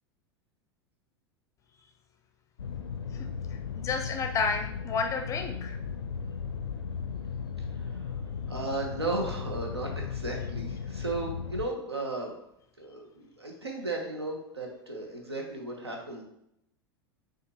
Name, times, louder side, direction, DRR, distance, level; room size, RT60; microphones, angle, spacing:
sound 1, 2.6-11.7, left 6 dB, 80° left, 0.4 m, -36 dB
voice 1, 3.8-5.8, left 5 dB, 25° left, 5 dB, 0.6 m, -31 dB
voice 2, 8.5-12.3 12.8-16.2, right 2 dB, 80° right, 1 dB, 0.9 m, -35 dB
6.6 x 2.5 x 3.0 m, 0.78 s
figure-of-eight pair, 85°, 13 cm